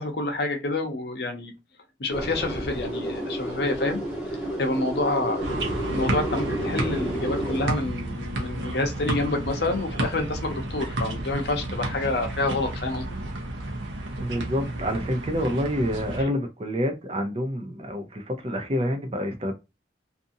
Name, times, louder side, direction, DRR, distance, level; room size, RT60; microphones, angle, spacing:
voice 1, 0.0-1.5 2.0-4.0 4.6-5.6 5.9-13.1, left 2 dB, 60° left, 0.7 m, -28 dB
sound 1, 2.1-7.7, right 1 dB, 10° right, 0.9 m, -31 dB
sound 2, 5.4-16.2, right 1 dB, 85° right, 0.8 m, -31 dB
voice 2, 14.2-19.5, equal, 30° right, 0.5 m, -27 dB
2.6 x 2.5 x 2.6 m
head